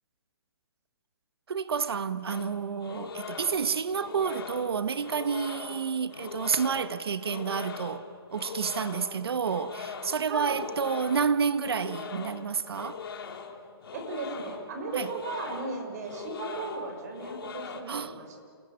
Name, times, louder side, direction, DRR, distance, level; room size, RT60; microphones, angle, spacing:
voice 1, 1.5-13.0 14.9-15.1 17.9-18.2, right 6 dB, 80° right, 1.4 m, -30 dB
sound 1, 2.3-17.8, left 5 dB, 65° left, 2.9 m, -41 dB
voice 2, 10.2-10.6 13.9-18.4, right 3 dB, 40° right, 5.6 m, -36 dB
28.5 x 18.0 x 9.8 m
hypercardioid pair, 165°, 13 cm